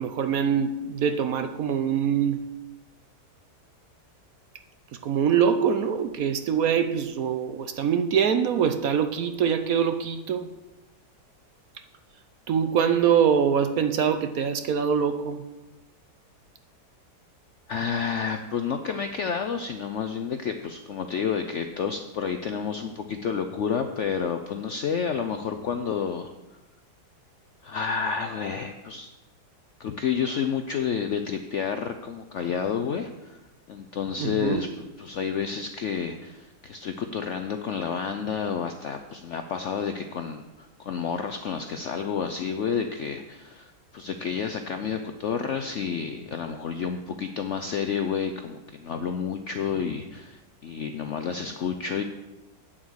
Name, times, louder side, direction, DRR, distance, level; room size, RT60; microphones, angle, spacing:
voice 1, 0.0-2.5 5.0-10.5 12.5-15.4 34.2-34.6, right 7 dB, 65° right, 8 dB, 1.0 m, -24 dB
voice 2, 17.7-26.3 27.6-29.1 29.8-33.4 33.7-52.0, left 6 dB, 70° left, 7 dB, 0.7 m, -30 dB
8.7 x 7.5 x 6.3 m, 1.0 s
omnidirectional pair, 1.9 m